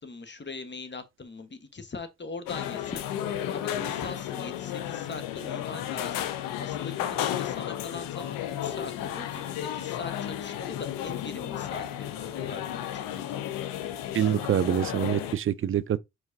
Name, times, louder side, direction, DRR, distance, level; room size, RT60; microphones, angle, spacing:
voice 1, 0.0-3.0 3.4-6.3 6.6-13.2, left 3 dB, 35° left, 1.2 m, -41 dB
sound 1, 2.5-15.3, left 11 dB, 85° left, 0.6 m, -33 dB
voice 2, 14.1-16.0, right 10 dB, 40° right, 0.4 m, -25 dB
4.7 x 4.0 x 2.7 m
hypercardioid pair, 40°, 33 cm